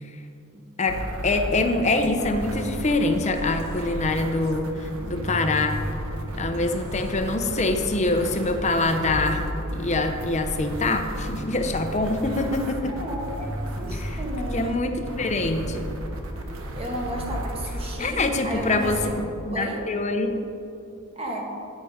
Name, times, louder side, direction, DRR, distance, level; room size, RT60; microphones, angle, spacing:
sound 1, 0.9-19.2, right 1 dB, 80° right, 1.1 m, -33 dB
voice 1, 1.2-5.8 6.4-9.4 9.7-12.9 14.0-14.2 14.5-14.9 15.2-15.9 18.0-19.0 19.5-20.4, left 2 dB, 35° left, 6 dB, 0.8 m, -24 dB
voice 2, 12.9-13.5 13.8-14.8 16.8-19.2 19.5-19.9 21.1-21.4, equal, 30° right, -1 dB, 1.6 m, -33 dB
10.0 x 8.4 x 5.0 m, 2.7 s
head